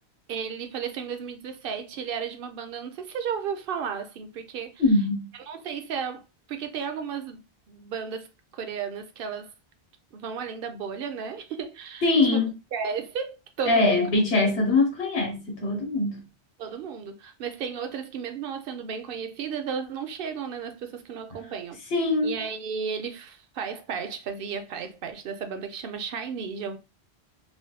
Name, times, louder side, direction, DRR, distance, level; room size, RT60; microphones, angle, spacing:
voice 1, 0.3-5.0 5.3-9.5 10.1-14.0 16.6-21.8 22.2-26.8, right 6 dB, 65° right, 0.7 m, -34 dB
voice 2, 4.8-5.3 12.0-12.5 13.7-16.2 21.9-22.4, left 2 dB, 70° left, 1.0 m, -22 dB
3.2 x 2.2 x 2.7 m
omnidirectional pair, 1.1 m